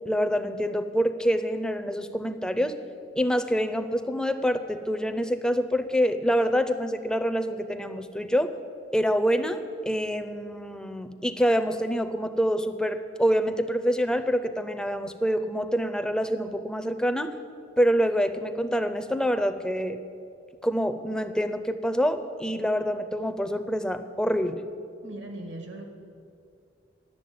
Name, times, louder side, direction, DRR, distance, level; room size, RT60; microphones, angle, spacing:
voice 1, 0.0-2.8 3.2-8.5 8.9-17.3 17.8-20.0 20.6-24.6, equal, 5° left, 9 dB, 0.5 m, -26 dB
voice 2, 25.0-25.9, right 1 dB, 80° right, 4 dB, 1.8 m, -39 dB
10.5 x 7.2 x 9.3 m, 2.4 s
head